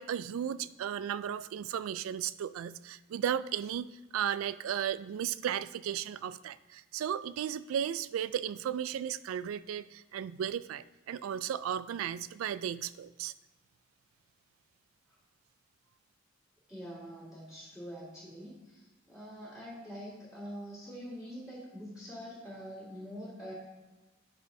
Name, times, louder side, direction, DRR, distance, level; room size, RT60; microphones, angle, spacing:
voice 1, 0.0-3.9 4.1-13.3, right 9 dB, 85° right, 16 dB, 0.3 m, -35 dB
voice 2, 16.7-23.5, equal, 5° right, -12 dB, 2.1 m, -45 dB
11.0 x 5.1 x 2.7 m, 1.2 s
head